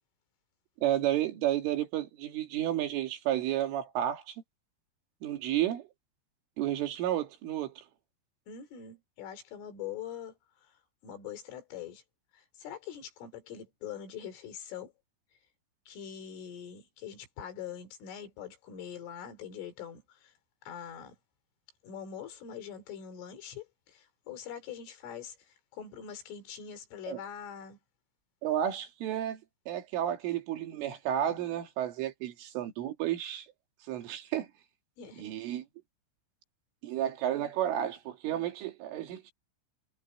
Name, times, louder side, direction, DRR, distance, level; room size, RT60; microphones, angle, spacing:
voice 1, 0.8-4.4 5.2-5.9 6.6-7.8 27.1-27.2 28.4-29.4 29.7-33.5 33.9-34.5 35.2-35.6 36.8-39.3, right 11 dB, 85° right, 5.1 m, -32 dB
voice 2, 8.5-12.0 12.3-14.9 15.9-20.3 20.7-21.2 21.8-27.8 35.0-35.3, left 8 dB, 90° left, 6.2 m, -43 dB
omnidirectional pair, 5.5 m